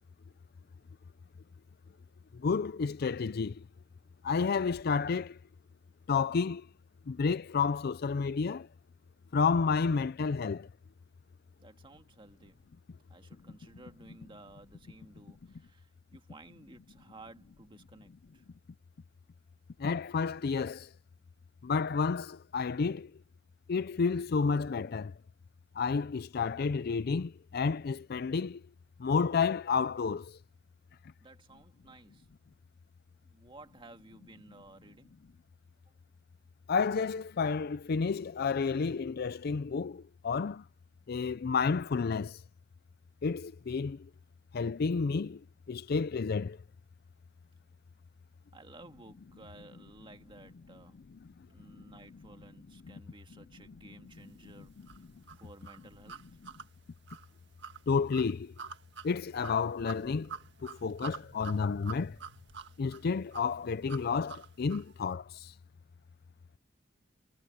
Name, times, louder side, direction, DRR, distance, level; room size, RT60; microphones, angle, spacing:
voice 1, 2.4-3.5 4.2-5.4 6.1-6.6 7.1-8.7 9.3-10.7 19.8-20.9 21.6-23.1 23.7-25.1 25.8-28.6 29.0-30.3 36.7-40.6 41.1-42.4 43.2-44.0 44.5-45.4 45.7-46.6 57.9-58.5 59.0-60.3 60.6-62.2 62.8-65.5, left 5 dB, 55° left, 0.4 m, -30 dB
voice 2, 11.6-12.6 13.1-18.5 31.2-32.3 33.2-35.2 48.5-51.0 51.4-54.7 55.3-56.2, right 2 dB, 25° right, 1.9 m, -55 dB
sound 1, 54.9-64.9, right 6 dB, 65° right, 1.7 m, -47 dB
head